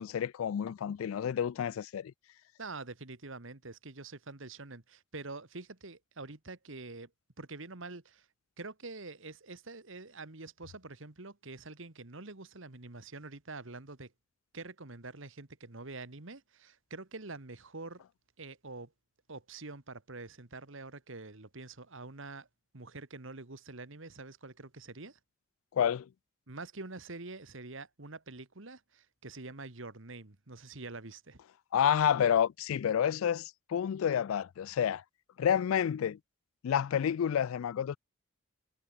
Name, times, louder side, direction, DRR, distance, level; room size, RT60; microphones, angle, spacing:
voice 1, 0.0-2.1 25.7-26.1 31.7-35.0 35.4-36.2 36.6-38.0, left 8 dB, 75° left, 0.3 m, -29 dB
voice 2, 2.6-7.1 7.4-8.3 8.6-14.1 14.5-18.0 18.4-18.9 19.3-22.5 22.7-25.2 26.5-31.4, right 3 dB, 65° right, 1.8 m, -46 dB
head